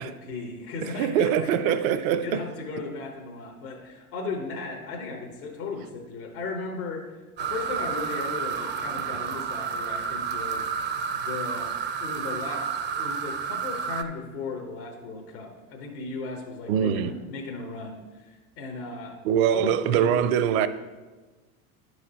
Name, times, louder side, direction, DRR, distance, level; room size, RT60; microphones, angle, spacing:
voice 1, 0.0-1.7 2.2-10.7 11.1-11.7 12.0-19.2 19.5-20.1, left 3 dB, 75° left, 1.3 m, -36 dB
voice 2, 0.8-2.4 16.7-17.1 19.2-20.7, right 8 dB, 65° right, 0.7 m, -23 dB
sound 1, 7.4-14.0, right 6 dB, 25° right, 0.4 m, -30 dB
10.5 x 4.9 x 4.3 m
hypercardioid pair, 90°, 44 cm